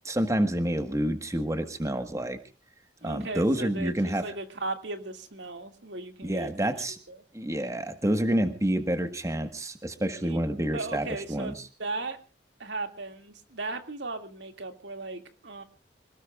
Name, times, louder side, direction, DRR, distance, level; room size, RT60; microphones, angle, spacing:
voice 1, 0.0-2.4 3.0-4.2 6.2-7.0 7.3-11.5, right 1 dB, 20° right, 8 dB, 1.4 m, -28 dB
voice 2, 3.0-6.7 7.1-7.2 10.2-10.4 10.7-12.2 12.6-15.6, right 3 dB, 80° right, 7 dB, 2.3 m, -37 dB
26.5 x 18.5 x 2.4 m, 0.34 s
head